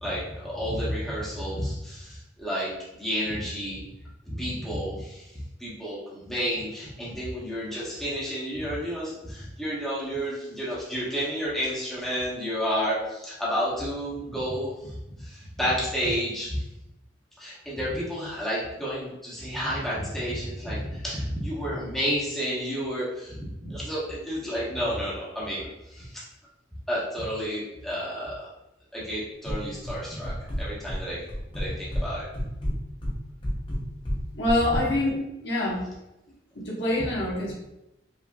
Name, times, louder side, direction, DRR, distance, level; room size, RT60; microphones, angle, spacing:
voice 1, 0.0-2.7 3.0-3.8 4.3-16.6 17.4-26.2 26.9-28.5 28.9-31.2 31.5-32.3, equal, ahead, -8 dB, 1.3 m, -31 dB
sound 1, 29.4-30.0 30.2-31.0 31.3-32.1 32.3-34.8, equal, 30° left, 0.9 m, -29 dB
voice 2, 34.3-35.8 36.5-37.5, left 1 dB, 65° left, -5 dB, 1.3 m, -26 dB
5.6 x 3.3 x 2.4 m, 0.91 s
head